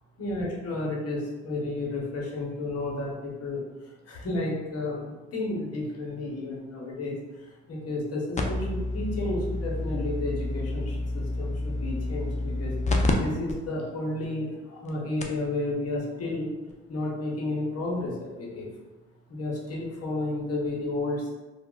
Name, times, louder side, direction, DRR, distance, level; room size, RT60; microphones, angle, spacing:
voice 1, 0.2-12.7 13.1-16.5 16.9-18.7 19.3-21.3, left 2 dB, 55° left, -3 dB, 1.0 m, -32 dB
sound 1, 8.4-13.1 13.5-13.6 14.2-14.3 14.9-15.0 15.2-15.5 16.7-16.8, left 2 dB, 25° left, 0.3 m, -29 dB
2.3 x 2.0 x 3.8 m, 1.2 s
cardioid pair, 90°, 30 cm